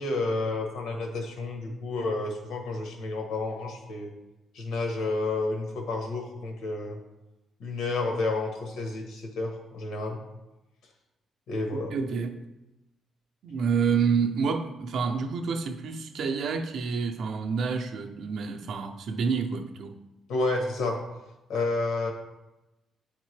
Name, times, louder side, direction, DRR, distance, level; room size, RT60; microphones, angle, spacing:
voice 1, 0.0-4.1 4.5-7.0 7.6-10.2 11.5-11.9 20.3-21.0 21.5-22.1, left 2 dB, 85° left, 1.2 m, -30 dB
voice 2, 11.7-12.4 13.4-20.0, right 5 dB, 60° right, 0.5 m, -28 dB
8.8 x 3.6 x 3.2 m
cardioid pair, 165°, 0 cm